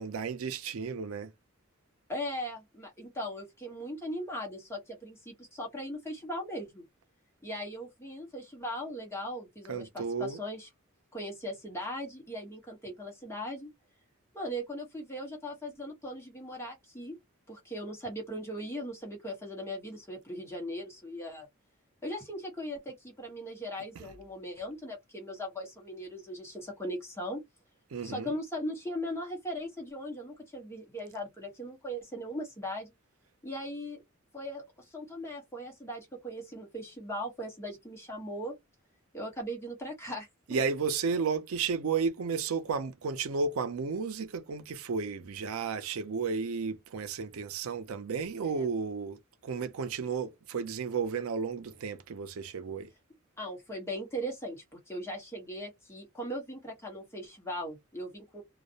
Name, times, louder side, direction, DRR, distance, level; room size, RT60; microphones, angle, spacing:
voice 1, 0.0-1.3 9.7-10.4 24.0-24.2 27.9-28.3 40.5-52.9, right 5 dB, 85° right, 0.5 m, -33 dB
voice 2, 2.1-6.8 7.4-10.7 11.1-13.7 14.3-17.2 17.5-21.5 22.0-27.4 28.0-32.9 33.4-34.0 34.3-38.5 39.1-40.6 48.4-48.7 53.4-58.4, equal, 10° left, 1.0 m, -39 dB
2.3 x 2.0 x 2.7 m
head